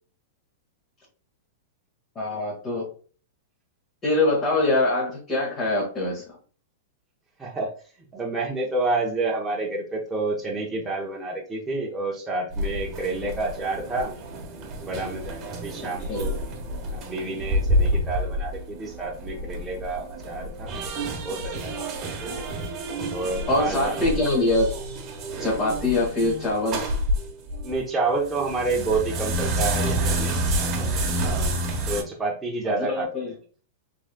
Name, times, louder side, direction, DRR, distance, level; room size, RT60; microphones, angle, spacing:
voice 1, 2.2-2.9 4.0-6.2 16.1-16.3 23.5-24.7 25.4-26.8 32.6-33.3, left 2 dB, 20° left, -5 dB, 1.8 m, -24 dB
voice 2, 7.4-7.7 8.1-14.2 14.8-16.3 16.9-20.9 21.2-21.9 22.2-22.3 23.1-24.2 27.6-33.3, right 3 dB, 10° right, -3 dB, 0.8 m, -29 dB
sound 1, 12.5-27.8 28.2-32.0, right 1 dB, 25° right, 1.1 m, -29 dB
6.1 x 3.7 x 2.2 m, 0.40 s
supercardioid pair, 155°, 0 cm